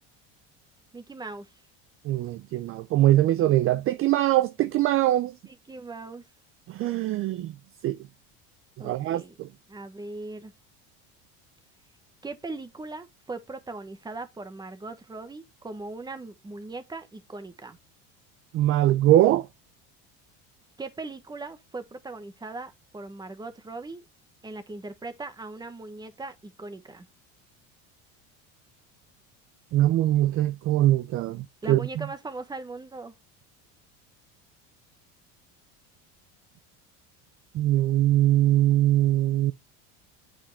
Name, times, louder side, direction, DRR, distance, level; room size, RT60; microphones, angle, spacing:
voice 1, 0.9-1.5 5.4-6.2 8.8-9.4 9.7-10.5 12.2-17.8 20.8-24.0 24.4-27.1 31.6-33.1, right 3 dB, 10° right, 1.3 m, -39 dB
voice 2, 2.0-5.3 6.7-7.5 7.8-8.0 8.8-9.5 18.5-19.5 29.7-32.1 37.5-39.5, right 14 dB, 40° right, 0.5 m, -22 dB
8.5 x 5.0 x 3.4 m
cardioid pair, 125°, 34 cm